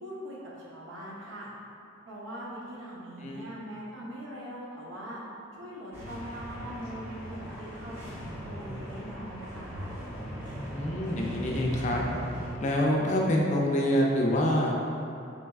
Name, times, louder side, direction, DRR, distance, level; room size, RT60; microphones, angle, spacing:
voice 1, 0.0-1.5 2.1-5.2 5.5-9.9, equal, 85° right, -5 dB, 0.8 m, -41 dB
voice 2, 3.2-3.6 10.7-12.0 12.6-14.7, equal, 40° left, -1 dB, 0.4 m, -26 dB
sound 1, 5.9-12.5, equal, 10° right, 0.7 m, -38 dB
3.8 x 3.3 x 2.3 m, 2.6 s
head